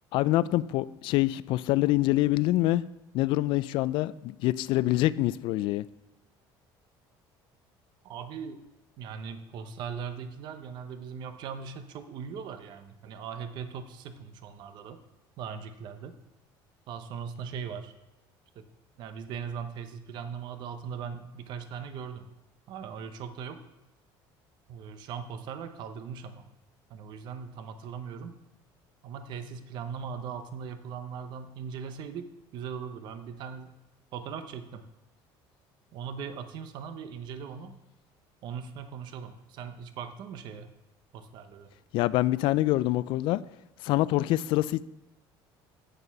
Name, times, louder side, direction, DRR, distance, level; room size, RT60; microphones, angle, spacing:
voice 1, 0.1-2.8 3.1-5.8 41.9-43.4 43.8-44.8, left 16 dB, 60° left, 17 dB, 0.4 m, -25 dB
voice 2, 8.0-8.6 9.0-15.0 15.4-16.2 16.9-17.9 18.6-18.7 19.0-22.3 22.7-23.6 24.7-26.4 26.9-28.3 29.0-33.8 34.1-34.8 35.9-37.7 38.4-40.7 41.1-41.7, right 6 dB, 50° right, 9 dB, 0.8 m, -39 dB
9.1 x 6.7 x 5.9 m, 1.0 s
cardioid pair, 165°, 10 cm